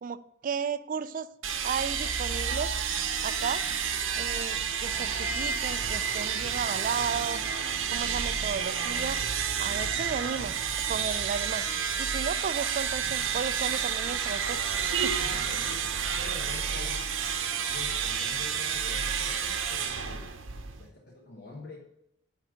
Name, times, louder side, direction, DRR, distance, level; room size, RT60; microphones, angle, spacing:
voice 1, 0.0-1.3 1.6-2.7 3.2-3.6 4.2-7.5 7.9-9.2 9.6-10.6 10.9-11.7 12.0-14.6 15.0-15.1, right 6 dB, 45° right, 15 dB, 0.3 m, -34 dB
sound 1, 1.4-20.9, right 7 dB, 90° right, 0.9 m, -30 dB
voice 2, 15.2-17.0 17.6-20.4 20.8-21.8, left 2 dB, 55° left, 0 dB, 1.1 m, -46 dB
9.3 x 3.9 x 6.2 m, 0.80 s
head